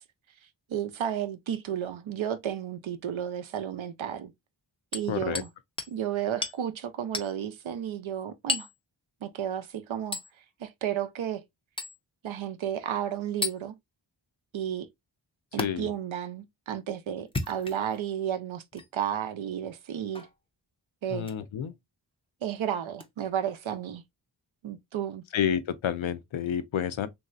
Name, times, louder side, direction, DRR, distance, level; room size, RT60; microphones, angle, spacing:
voice 1, 0.7-4.3 4.9-5.5 5.9-8.7 9.2-10.2 10.6-11.4 12.2-13.7 14.5-14.9 15.5-20.3 21.0-21.3 22.4-24.0 24.6-25.2, right 9 dB, 85° right, 0.5 m, -32 dB
Hammer, 4.9-5.5 5.8-6.0 6.4-6.6 7.1-7.3 8.5-8.8 10.1-10.3 11.8-12.0 13.4-13.6 15.6-15.7 17.2-18.0 18.7-18.9 20.1-20.3 21.2-21.4 23.0-23.1, left 3 dB, 15° left, 0.4 m, -33 dB
voice 2, 5.1-5.4 15.6-15.9 21.1-21.7 25.3-27.1, left 9 dB, 85° left, 0.6 m, -29 dB
3.1 x 2.6 x 2.4 m
wide cardioid pair, 80°, 46 cm